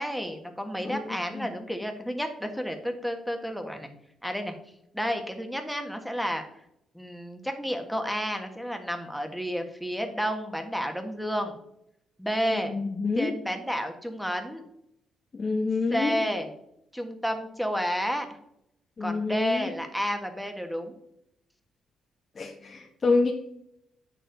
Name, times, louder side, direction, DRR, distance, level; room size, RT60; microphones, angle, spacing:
voice 1, 0.0-3.9 4.2-4.5 4.9-6.4 6.9-11.5 12.2-12.8 13.1-14.6 15.9-16.5 16.9-18.3 19.0-20.9, equal, ahead, 5 dB, 1.5 m, -31 dB
voice 2, 12.5-13.3 15.3-16.2 19.0-19.7 22.4-23.3, left 3 dB, 40° left, 0 dB, 1.1 m, -27 dB
8.8 x 6.8 x 4.0 m, 0.78 s
cardioid pair, 90°, 0 cm